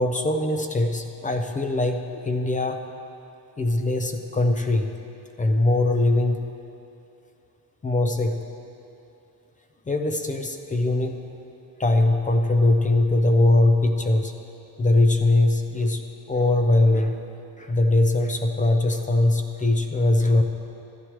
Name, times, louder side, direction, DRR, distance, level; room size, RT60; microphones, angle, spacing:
voice 1, 0.0-2.8 3.6-4.9 5.4-6.5 7.8-8.4 9.9-11.2 11.8-14.3 14.8-16.0 16.3-17.2 17.6-20.4, left 2 dB, 20° left, 5 dB, 0.4 m, -21 dB
14.5 x 11.0 x 3.0 m, 2.7 s
cardioid pair, 150°, 43 cm